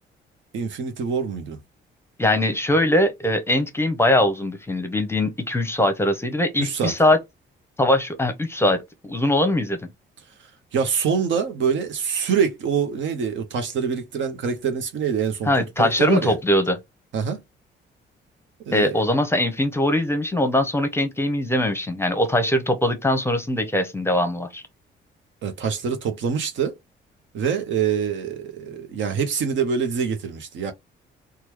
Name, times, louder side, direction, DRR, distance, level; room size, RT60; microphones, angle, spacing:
voice 1, 0.5-1.6 6.6-6.9 10.7-15.5 15.8-16.3 17.1-17.4 18.7-19.0 25.4-26.7 27.3-30.7, right 6 dB, 70° right, 0.8 m, -25 dB
voice 2, 2.2-7.2 7.8-9.8 15.5-16.8 18.7-24.6, left 1 dB, 10° left, 0.7 m, -21 dB
3.0 x 2.3 x 3.4 m
cardioid pair, 90°, 20 cm